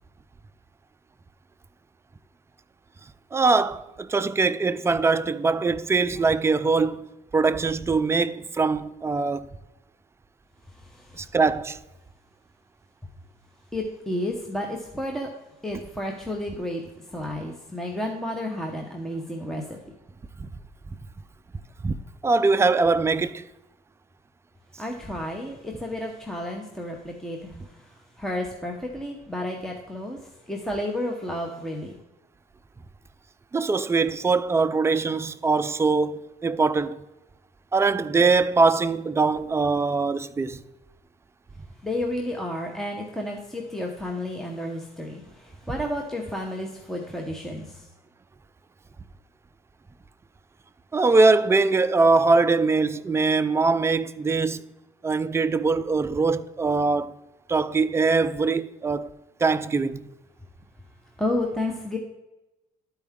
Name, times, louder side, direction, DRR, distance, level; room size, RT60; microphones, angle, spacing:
voice 1, 3.3-7.1 7.3-9.5 11.2-11.8 20.4-20.5 21.8-21.9 22.2-23.4 33.5-37.0 37.7-40.6 50.9-54.6 55.0-57.1 57.5-59.1 59.4-60.1, right 4 dB, 15° right, 0.4 m, -22 dB
voice 2, 13.7-15.3 15.6-16.8 17.1-19.8 24.8-27.6 28.2-30.2 30.5-31.9 41.8-45.2 45.7-47.6 61.2-62.0, left 1 dB, ahead, 0.8 m, -31 dB
12.0 x 4.6 x 3.6 m
cardioid pair, 110°, 17 cm